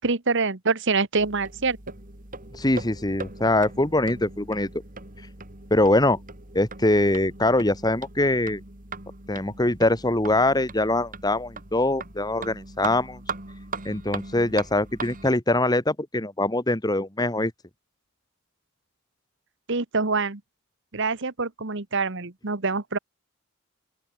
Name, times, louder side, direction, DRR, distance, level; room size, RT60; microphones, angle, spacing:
voice 1, 0.0-1.8 19.7-20.4 20.9-23.0, right 4 dB, 60° right, 1.5 m, -25 dB
sound 1, 1.2-15.3, right 4 dB, 40° right, 4.3 m, -40 dB
voice 2, 2.5-4.7 5.7-6.2 6.5-8.6 9.3-13.2 13.9-17.5, left 2 dB, 20° left, 2.1 m, -23 dB
open air
head